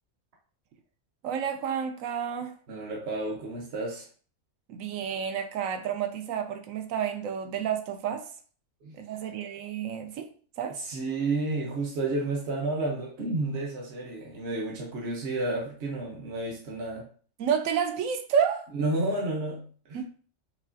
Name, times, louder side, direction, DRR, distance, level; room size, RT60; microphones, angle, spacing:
voice 1, 1.2-2.5 4.7-8.3 8.9-10.8 17.4-18.7 19.9-20.0, right 8 dB, 75° right, 1.0 m, -30 dB
voice 2, 2.7-4.1 8.8-9.0 10.8-17.1 18.7-20.0, right 2 dB, 55° right, 1.0 m, -31 dB
5.3 x 2.4 x 2.5 m
omnidirectional pair, 1.4 m